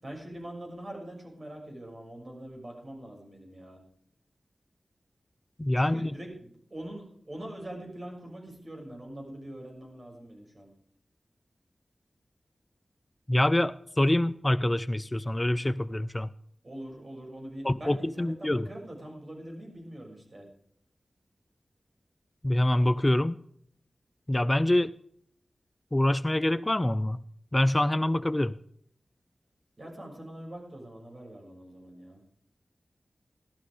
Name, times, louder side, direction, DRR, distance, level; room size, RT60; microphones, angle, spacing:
voice 1, 0.0-3.8 5.8-10.7 16.6-20.5 29.8-32.2, right 1 dB, 50° right, 1 dB, 6.7 m, -43 dB
voice 2, 5.6-6.1 13.3-16.3 17.6-18.7 22.4-23.4 24.3-24.9 25.9-27.2 27.5-28.5, left 1 dB, 20° left, 14 dB, 0.5 m, -25 dB
15.5 x 12.5 x 5.0 m, 0.65 s
wide cardioid pair, 65°, 0 cm